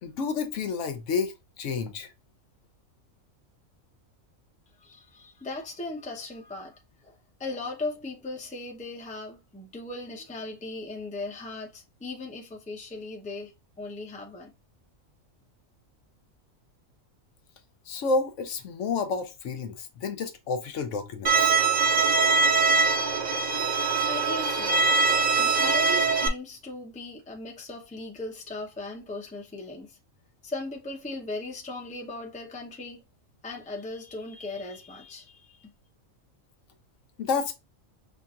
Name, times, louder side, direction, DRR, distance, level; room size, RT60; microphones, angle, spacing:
voice 1, 0.0-2.1 17.9-21.5 37.2-37.5, left 4 dB, 70° left, 0.9 m, -30 dB
voice 2, 4.8-14.5 24.1-30.0 30.4-33.0 33.4-35.7, left 2 dB, 10° left, 0.5 m, -38 dB
Bowed string instrument, 21.2-26.3, right 4 dB, 55° right, 0.5 m, -22 dB
5.6 x 2.5 x 2.4 m
omnidirectional pair, 1.4 m